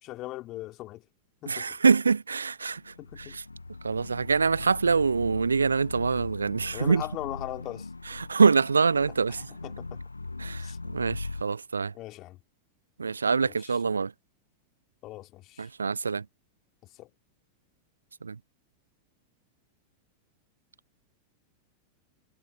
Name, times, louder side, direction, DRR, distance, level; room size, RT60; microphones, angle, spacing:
voice 1, 0.0-1.0 1.4-1.8 3.0-3.4 6.7-7.9 9.6-10.0 10.6-10.8 11.9-12.4 13.4-13.8 15.0-15.7 17.0-17.1, left 17 dB, 35° left, 3.3 m, -39 dB
voice 2, 1.5-3.4 3.8-7.0 8.1-9.5 10.4-11.9 13.0-14.1 15.6-16.2 18.2-18.4, right 5 dB, 75° right, 0.4 m, -25 dB
sound 1, 2.7-11.4, left 3 dB, 80° left, 1.0 m, -40 dB
figure-of-eight pair, 90°, 0 cm